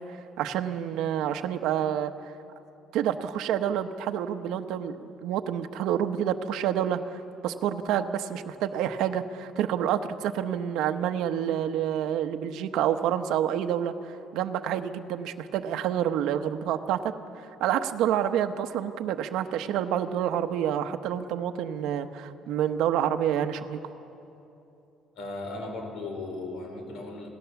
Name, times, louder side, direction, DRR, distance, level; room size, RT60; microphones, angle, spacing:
voice 1, 0.0-2.3 2.9-17.1 17.6-23.8, right 10 dB, 75° right, 7 dB, 1.0 m, -28 dB
voice 2, 25.1-27.3, left 2 dB, 60° left, 4 dB, 4.1 m, -36 dB
28.0 x 17.5 x 7.1 m, 2.9 s
cardioid pair, 150°, 0 cm